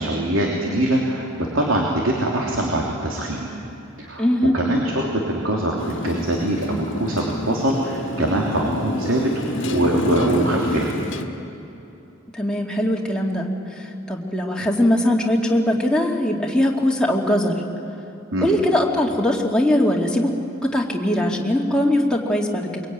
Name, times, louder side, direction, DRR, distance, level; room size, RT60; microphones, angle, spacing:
voice 1, 0.0-3.5 4.0-4.3 4.5-10.9 18.3-18.5, right 1 dB, 75° right, -2 dB, 3.2 m, -23 dB
voice 2, 4.2-4.6 12.3-17.5 18.4-20.3 20.7-22.8, left 1 dB, 5° left, -2 dB, 2.4 m, -21 dB
Motorcycle, 5.8-11.3, left 1 dB, 65° left, 1.6 m, -28 dB
23.0 x 23.0 x 9.4 m, 2.9 s
head